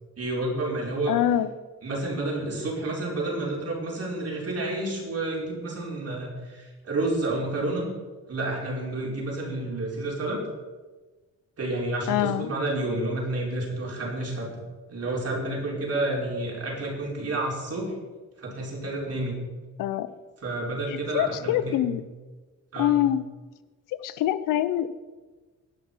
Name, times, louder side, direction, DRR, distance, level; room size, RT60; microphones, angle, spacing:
voice 1, 0.2-1.1 1.8-7.9 8.3-10.4 11.6-14.5 14.9-17.9 18.4-19.3 20.4-21.8 22.7-22.9, right 2 dB, 50° right, -2 dB, 4.5 m, -30 dB
voice 2, 1.1-1.5 12.1-12.5 19.8-20.1 20.9-22.0 22.8-23.2 23.9-24.9, left 12 dB, 90° left, 14 dB, 0.7 m, -25 dB
18.0 x 6.2 x 5.5 m, 1.3 s
cardioid pair, 75°, 31 cm